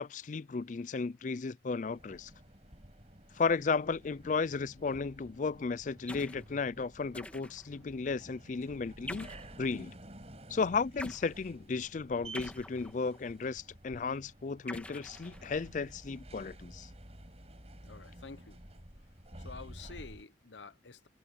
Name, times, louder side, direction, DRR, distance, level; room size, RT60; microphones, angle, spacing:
voice 1, 0.0-2.3 3.4-9.3 9.6-9.9 10.5-16.9, left 4 dB, 45° left, 0.4 m, -34 dB
sound 1, 1.9-20.2, right 1 dB, 35° right, 6.9 m, -52 dB
sound 2, 6.1-6.5 7.1-7.8 9.1-9.6 11.0-11.3 12.3-13.2 14.7-15.7, left 1 dB, 10° left, 2.5 m, -45 dB
voice 2, 17.9-18.6 19.4-21.1, left 4 dB, 85° left, 1.0 m, -49 dB
head